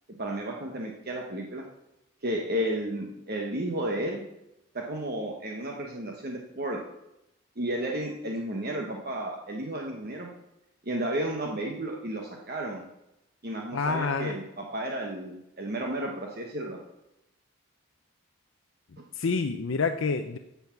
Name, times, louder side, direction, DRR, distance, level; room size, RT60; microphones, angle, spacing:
voice 1, 0.2-1.7 2.2-4.2 4.7-6.8 7.6-10.3 10.8-12.9 13.4-16.8, right 1 dB, 45° right, 0 dB, 1.1 m, -32 dB
voice 2, 13.7-14.4 19.2-20.4, left 4 dB, 60° left, 6 dB, 0.5 m, -27 dB
9.5 x 7.1 x 5.9 m, 0.87 s
head